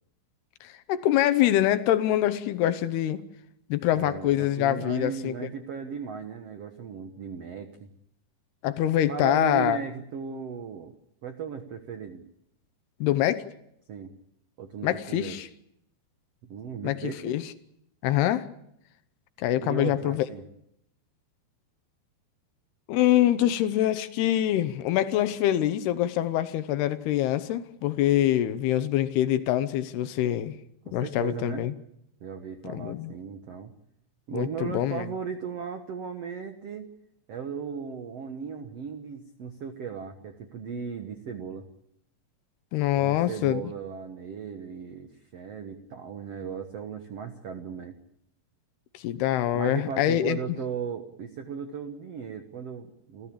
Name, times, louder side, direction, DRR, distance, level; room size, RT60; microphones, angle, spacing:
voice 1, 0.6-3.2 3.7-5.3 8.6-9.8 13.0-13.4 14.8-15.5 16.8-17.4 18.0-18.5 19.4-20.3 22.9-30.5 30.9-31.7 32.7-33.1 34.3-35.1 42.7-43.6 48.9-50.4, left 12 dB, 75° left, 12 dB, 2.9 m, -25 dB
voice 2, 3.9-7.9 9.1-10.9 11.2-12.2 13.9-14.1 14.6-15.4 16.4-17.3 19.6-20.5 30.8-31.7 32.2-33.7 34.3-36.8 37.3-41.7 43.0-47.9 49.5-53.3, right 6 dB, 75° right, 7 dB, 1.4 m, -36 dB
28.5 x 14.5 x 8.7 m, 0.78 s
omnidirectional pair, 4.8 m